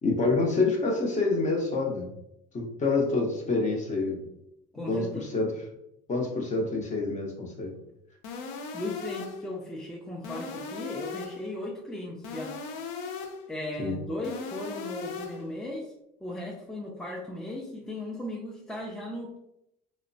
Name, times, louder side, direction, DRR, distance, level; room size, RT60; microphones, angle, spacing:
voice 1, 0.0-2.1 2.5-4.2 4.9-5.6 6.1-7.7 13.8-13.9, left 3 dB, 35° left, 0 dB, 0.8 m, -27 dB
voice 2, 4.7-5.3 8.7-12.5 13.5-15.9 16.2-19.4, left 1 dB, ahead, -2 dB, 0.4 m, -37 dB
sound 1, 8.2-9.5 10.2-11.5 12.2-13.5 14.2-15.5, left 5 dB, 80° left, 0.5 m, -38 dB
2.8 x 2.1 x 2.6 m, 0.81 s
supercardioid pair, 95°, 21 cm